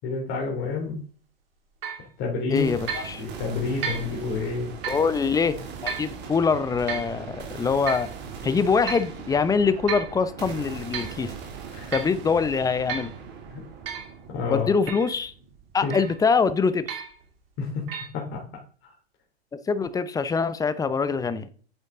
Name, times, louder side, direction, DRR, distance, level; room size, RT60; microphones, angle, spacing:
voice 1, 0.0-1.0 2.2-2.7 2.9-4.7 11.7-11.9 13.5-13.6 14.3-14.7 15.8-16.0 17.6-17.9 18.1-18.4 18.8-18.9, left 4 dB, 35° left, -2 dB, 3.0 m, -29 dB
sound 1, 1.8-2.1 2.9-3.1 3.8-4.1 4.8-5.1 5.9-6.1 6.9-7.1 7.9-8.1 8.9-9.1 9.9-10.1 10.7-11.2 11.9-12.2 12.9-13.2 13.9-14.1 14.9-15.1 15.9-16.2 16.9-17.2 17.9-18.1, right 7 dB, 65° right, 2.6 m, -33 dB
voice 2, 2.5-3.2 4.9-8.1 8.4-11.3 11.9-13.1 14.5-15.3 15.7-16.8 19.7-21.5, left 5 dB, 10° left, 14 dB, 0.8 m, -24 dB
sound 2, 2.6-16.5, right 6 dB, 35° right, 2.8 m, -40 dB
8.9 x 8.6 x 3.7 m, 0.42 s
figure-of-eight pair, 100°, 31 cm